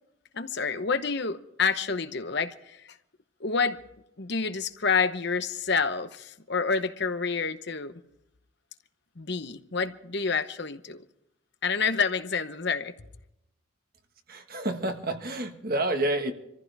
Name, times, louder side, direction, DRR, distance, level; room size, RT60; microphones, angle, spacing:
voice 1, 0.3-2.9 3.4-3.8 4.2-7.9 9.2-11.0 11.6-12.9, left 5 dB, 50° left, 1.0 m, -28 dB
voice 2, 14.3-16.3, right 1 dB, 45° right, 1.6 m, -29 dB
26.0 x 15.0 x 3.5 m
head